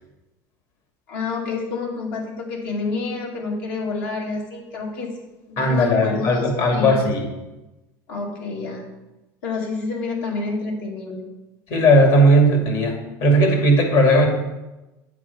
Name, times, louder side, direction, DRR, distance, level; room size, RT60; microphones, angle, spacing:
voice 1, 1.1-5.1 5.5-7.1 8.1-8.9 9.4-11.2, left 3 dB, 85° left, -1 dB, 2.3 m, -28 dB
voice 2, 5.6-7.3 11.7-14.3, equal, 65° left, 2 dB, 2.4 m, -17 dB
8.5 x 4.9 x 6.9 m, 1.1 s
supercardioid pair, 100°, 10 cm